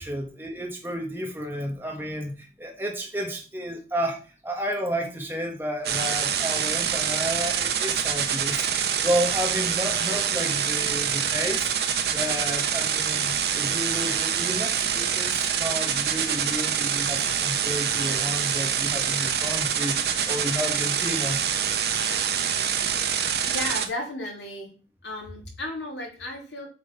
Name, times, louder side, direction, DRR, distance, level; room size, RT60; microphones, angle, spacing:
voice 1, 0.0-11.7 12.1-21.4, equal, 10° right, 1 dB, 1.1 m, -31 dB
sound 1, 5.8-23.9, right 8 dB, 60° right, 0.9 m, -26 dB
voice 2, 23.5-24.7 25.0-26.7, left 1 dB, 80° left, -1 dB, 3.0 m, -34 dB
7.6 x 3.7 x 5.3 m, 0.36 s
head